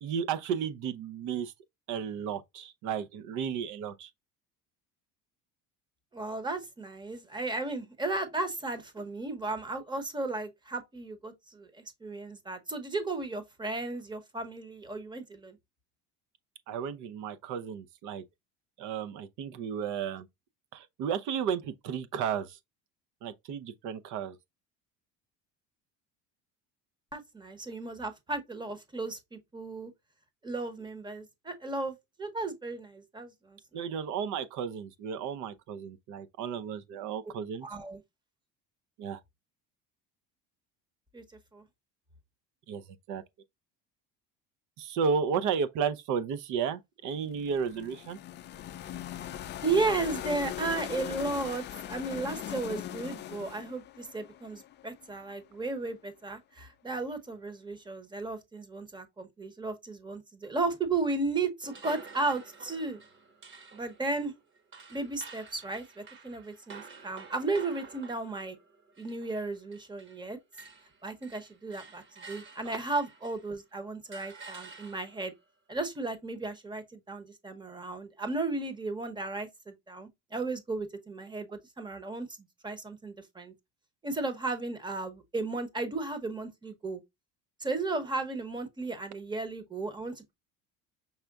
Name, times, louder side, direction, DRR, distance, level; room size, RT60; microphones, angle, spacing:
voice 1, 0.0-1.5 1.9-4.1 16.7-18.2 18.8-20.3 20.7-22.6 23.2-24.4 33.7-37.7 39.0-39.2 42.7-42.8 43.1-43.2 44.8-48.2 72.7-72.8, right 7 dB, 60° right, 0.7 m, -33 dB
voice 2, 6.1-15.6 27.1-29.9 30.4-33.9 37.6-38.0 41.1-41.2 41.5-41.6 49.6-63.0 63.7-64.3 64.9-68.6 69.0-70.4 71.0-75.3 75.7-82.4 82.6-83.5 84.0-87.0 87.6-90.3, right 3 dB, 15° right, 0.9 m, -35 dB
sound 1, 47.2-55.2, left 11 dB, 35° left, 0.4 m, -40 dB
sound 2, 61.6-70.3 70.5-73.6 74.1-75.3, right 4 dB, 35° right, 1.2 m, -50 dB
5.7 x 3.4 x 2.3 m
cardioid pair, 135°, 34 cm